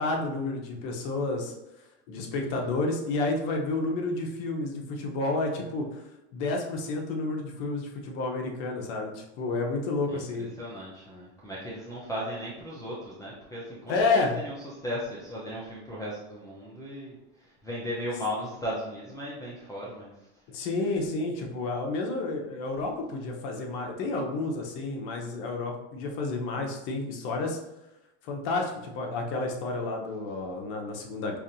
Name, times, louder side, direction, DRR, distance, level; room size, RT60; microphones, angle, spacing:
voice 1, 0.0-1.5 2.1-6.0 6.3-10.5 13.9-14.3 20.5-27.6 28.2-31.4, left 3 dB, 60° left, 2 dB, 0.9 m, -30 dB
voice 2, 10.6-14.5 14.8-20.1, equal, 10° left, -6 dB, 0.6 m, -36 dB
4.6 x 2.6 x 2.6 m, 0.92 s
supercardioid pair, 125°, 36 cm